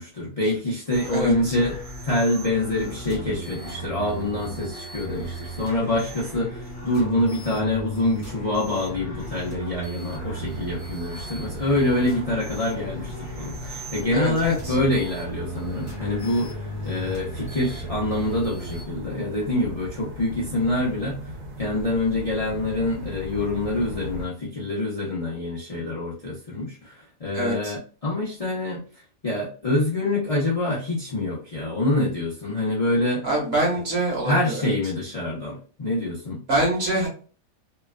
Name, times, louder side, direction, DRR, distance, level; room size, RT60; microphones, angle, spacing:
voice 1, 0.0-1.8 2.0-16.6 16.8-21.2 21.6-26.9 27.2-28.8 29.2-33.3 34.2-36.4, left 1 dB, 50° left, -6 dB, 0.4 m, -26 dB
sound 1, 0.9-18.8, right 1 dB, 15° right, 0.7 m, -36 dB
voice 2, 1.1-1.5 14.1-14.7 27.3-27.7 33.2-34.7 36.5-37.1, right 1 dB, 40° right, -3 dB, 1.2 m, -25 dB
sound 2, 10.1-24.3, equal, 70° right, 1.2 m, -39 dB
3.0 x 2.3 x 2.2 m, 0.39 s
omnidirectional pair, 1.8 m